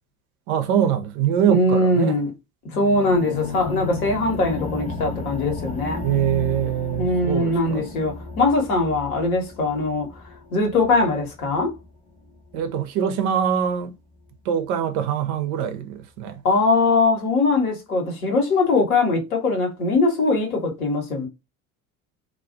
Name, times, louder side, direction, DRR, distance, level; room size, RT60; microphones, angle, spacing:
voice 1, 0.5-2.2 6.0-7.8 12.5-13.9 14.4-16.4, right 9 dB, 55° right, 0.7 m, -23 dB
voice 2, 1.5-2.3 2.7-6.0 7.0-10.1 10.5-11.7 16.4-21.3, left 2 dB, 80° left, 1.1 m, -21 dB
sound 1, 2.7-12.7, left 3 dB, 20° left, 0.8 m, -34 dB
2.3 x 2.3 x 2.4 m
figure-of-eight pair, 60°, 43 cm